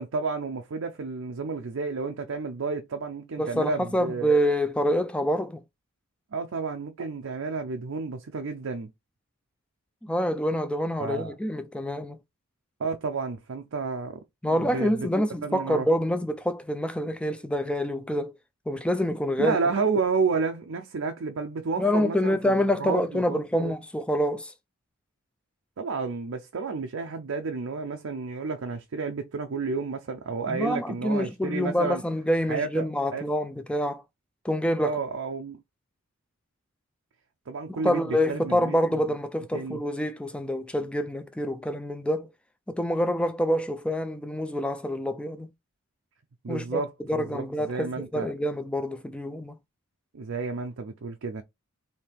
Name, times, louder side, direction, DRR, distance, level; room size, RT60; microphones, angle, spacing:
voice 1, 0.0-4.3 6.3-8.9 11.0-11.3 12.8-15.1 15.4-15.9 19.4-23.8 25.8-32.0 32.5-33.2 34.8-35.6 37.5-38.8 39.5-39.8 46.4-48.3 50.1-51.4, right 4 dB, 60° right, 0.5 m, -31 dB
voice 2, 3.4-5.6 10.0-12.2 14.4-18.3 18.7-19.6 21.8-24.5 30.5-34.0 34.4-35.0 37.8-42.3 42.7-45.5 46.5-46.8 47.1-49.6, equal, 5° left, 0.3 m, -26 dB
3.4 x 2.8 x 4.4 m
head